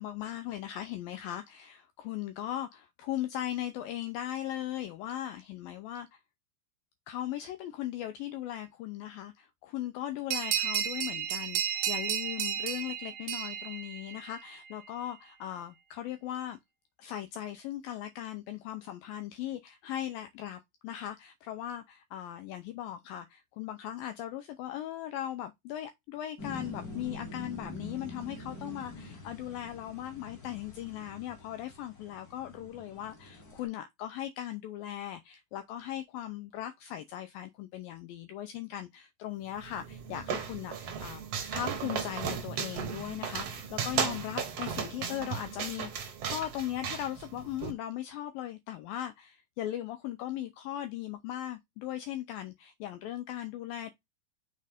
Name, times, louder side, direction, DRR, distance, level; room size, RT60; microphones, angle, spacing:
voice 1, 0.0-6.2 7.1-16.6 17.0-41.2 41.5-53.9, left 12 dB, 80° left, 2.2 m, -38 dB
sound 1, 10.3-14.5, right 9 dB, 80° right, 2.6 m, -33 dB
sound 2, 26.4-33.6, left 2 dB, 30° left, 2.0 m, -45 dB
sound 3, 39.5-47.7, right 7 dB, 60° right, 1.7 m, -36 dB
6.1 x 4.5 x 3.5 m
omnidirectional pair, 4.5 m